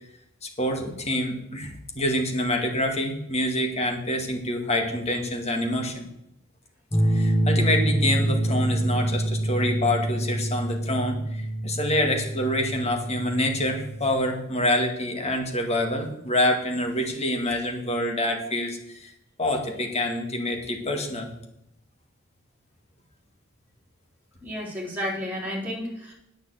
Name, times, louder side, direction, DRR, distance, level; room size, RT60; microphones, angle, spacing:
voice 1, 0.4-6.1 7.0-19.1 19.4-21.3, left 1 dB, 35° left, 2 dB, 2.1 m, -26 dB
sound 1, 6.9-14.2, right 1 dB, 15° left, 1.6 m, -26 dB
voice 2, 24.4-26.1, equal, 10° right, -4 dB, 4.1 m, -31 dB
9.3 x 6.7 x 7.9 m, 0.80 s
head